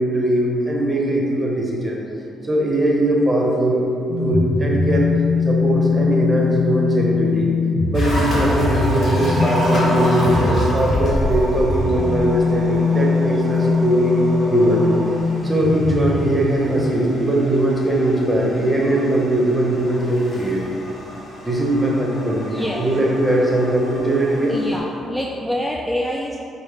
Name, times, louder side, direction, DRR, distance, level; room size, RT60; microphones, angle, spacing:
voice 1, 0.0-2.0 2.4-3.9 4.2-5.1 5.4-7.5 7.9-14.2 14.5-15.0 15.4-20.7 21.4-24.6 24.8-24.9, right 1 dB, 20° right, -2 dB, 0.9 m, -20 dB
sound 1, 4.1-16.9, left 4 dB, 70° left, 0.5 m, -21 dB
sound 2, 7.9-24.8, equal, 55° left, 1.0 m, -33 dB
sound 3, 8.4-15.2, right 2 dB, 40° right, 0.5 m, -28 dB
voice 2, 22.5-22.8 24.5-26.4, equal, 10° left, -2 dB, 0.3 m, -26 dB
5.3 x 2.0 x 3.5 m, 2.5 s
supercardioid pair, 65°, 0 cm